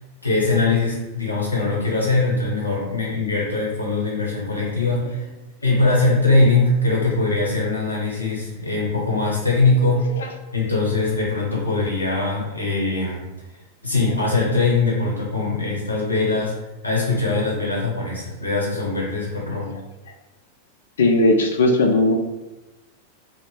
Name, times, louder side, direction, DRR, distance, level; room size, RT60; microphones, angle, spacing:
voice 1, 0.2-5.3 5.6-10.0 10.5-13.3 13.8-16.5 16.8-19.8, left 3 dB, 85° left, -4 dB, 0.8 m, -21 dB
voice 2, 21.0-22.2, left 2 dB, 65° left, 4 dB, 0.3 m, -17 dB
2.1 x 2.0 x 3.1 m, 1.0 s
figure-of-eight pair, 90°, 0 cm